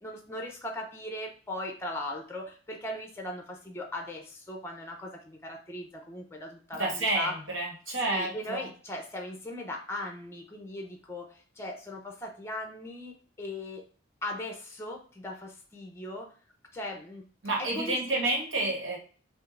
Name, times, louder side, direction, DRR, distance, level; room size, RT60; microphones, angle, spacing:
voice 1, 0.0-7.3 8.0-13.9 14.2-16.4 16.7-17.3 17.6-18.2 18.6-18.7, left 1 dB, 15° left, 2 dB, 0.6 m, -39 dB
voice 2, 6.7-8.7 17.4-19.0, right 2 dB, 75° right, -2 dB, 1.6 m, -29 dB
6.1 x 2.6 x 2.5 m, 0.40 s
head